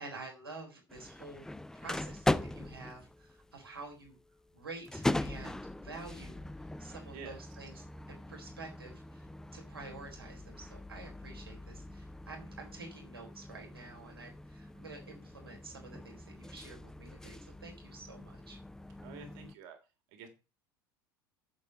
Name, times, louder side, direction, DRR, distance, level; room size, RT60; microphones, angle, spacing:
voice 1, 0.0-1.5 1.7-4.2 4.5-18.6, right 3 dB, 80° right, 0 dB, 4.2 m, -49 dB
sound 1, 0.9-19.5, left 1 dB, 5° left, 0.5 m, -40 dB
voice 2, 19.0-19.8 20.1-20.3, right 5 dB, 55° right, 4 dB, 3.4 m, -48 dB
8.4 x 7.6 x 5.3 m, 0.29 s
figure-of-eight pair, 70°, 12 cm